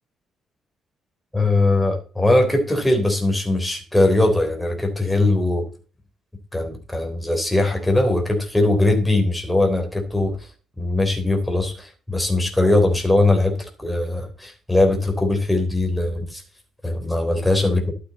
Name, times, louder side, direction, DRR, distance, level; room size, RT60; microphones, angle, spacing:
voice 1, 1.3-5.6 6.5-10.3 10.8-16.4 16.8-17.8, left 2 dB, 5° left, 2 dB, 3.7 m, -20 dB
12.0 x 8.6 x 4.2 m, 0.39 s
cardioid pair, 90°, 0 cm